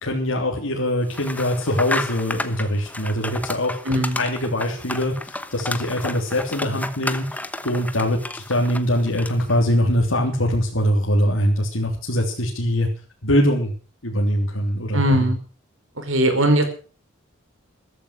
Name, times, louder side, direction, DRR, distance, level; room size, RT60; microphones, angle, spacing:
voice 1, 0.0-3.8 4.2-7.4 7.6-12.9 13.2-13.7 14.0-15.2, equal, 85° left, -1 dB, 3.3 m, -22 dB
sound 1, 1.1-9.6, left 2 dB, 10° left, 1.0 m, -32 dB
voice 2, 3.8-4.2 14.9-15.4 16.0-16.7, right 1 dB, 85° right, 8 dB, 5.0 m, -19 dB
14.5 x 13.5 x 6.5 m, 0.39 s
head